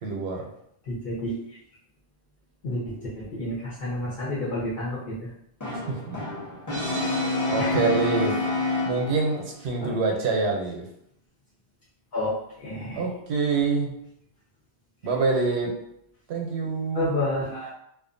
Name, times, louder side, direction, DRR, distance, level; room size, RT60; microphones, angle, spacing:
voice 1, 0.0-0.5 5.9-6.2 7.5-8.3 8.8-10.9 12.9-13.9 15.0-15.7 16.3-17.1, right 4 dB, 85° right, 1 dB, 0.9 m, -26 dB
voice 2, 0.9-1.3 2.6-2.8 3.2-5.0 7.6-7.7 9.8-9.9 12.1-12.3 12.6-13.0 16.9-17.7, left 1 dB, 60° left, -8 dB, 1.0 m, -29 dB
Brass instrument, 5.6-9.4, left 2 dB, 20° left, 0.6 m, -28 dB
2.4 x 2.3 x 2.5 m, 0.73 s
omnidirectional pair, 1.1 m